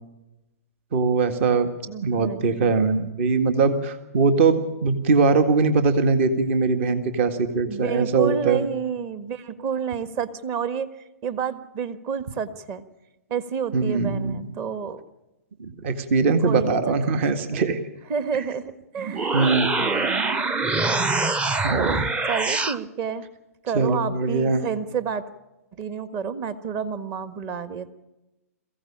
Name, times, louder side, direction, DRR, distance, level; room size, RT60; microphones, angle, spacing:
voice 1, 0.9-1.7 2.0-8.7 13.7-14.5 15.6-17.8 19.3-19.7 21.6-22.1 23.7-24.7, right 4 dB, 50° right, 9 dB, 1.8 m, -21 dB
voice 2, 1.9-2.7 7.7-10.9 11.2-12.8 13.3-15.0 16.4-16.9 18.1-20.3 22.3-23.2 23.6-25.3 25.7-27.9, right 6 dB, 35° right, 12 dB, 1.5 m, -30 dB
sound 1, 19.0-22.8, right 3 dB, 15° right, 0.7 m, -24 dB
22.5 x 15.5 x 8.7 m, 1.0 s
hypercardioid pair, 125°, 8 cm